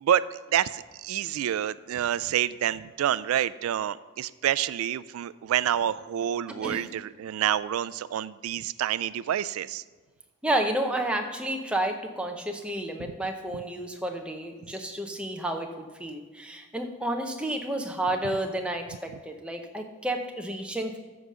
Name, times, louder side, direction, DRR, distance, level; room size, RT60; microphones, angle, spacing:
voice 1, 0.0-9.8 13.0-13.1, right 10 dB, 90° right, 18 dB, 0.3 m, -28 dB
voice 2, 10.4-21.0, right 1 dB, 5° right, 3 dB, 0.8 m, -31 dB
13.0 x 4.9 x 6.7 m, 1.3 s
head